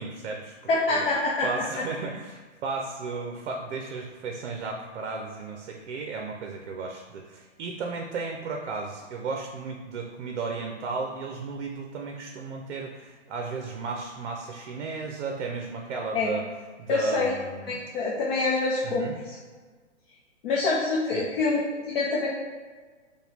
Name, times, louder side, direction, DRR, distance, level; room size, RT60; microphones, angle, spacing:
voice 1, 0.0-1.0 1.4-16.5 16.8-17.9 18.8-19.2 21.1-21.2, right 4 dB, 60° right, 2 dB, 0.6 m, -34 dB
voice 2, 0.7-1.5 16.1-16.3 16.9-17.3 17.7-19.4 20.4-22.3, left 3 dB, 50° left, -5 dB, 0.8 m, -26 dB
4.8 x 2.3 x 3.3 m, 1.4 s
hypercardioid pair, 155°, 37 cm